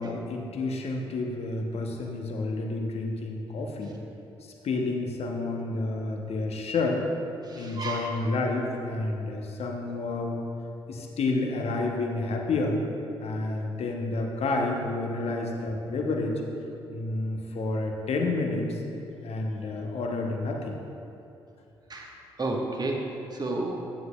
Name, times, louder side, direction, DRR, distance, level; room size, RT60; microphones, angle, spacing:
voice 1, 0.0-3.9 4.6-7.1 7.6-10.4 10.9-12.8 13.2-16.4 16.9-18.8 19.2-20.7, left 2 dB, 55° left, 2 dB, 1.0 m, -30 dB
voice 2, 7.4-8.2 21.9-23.8, right 2 dB, 30° right, 0 dB, 1.4 m, -32 dB
10.5 x 9.4 x 2.4 m, 2.7 s
figure-of-eight pair, 40°, 13 cm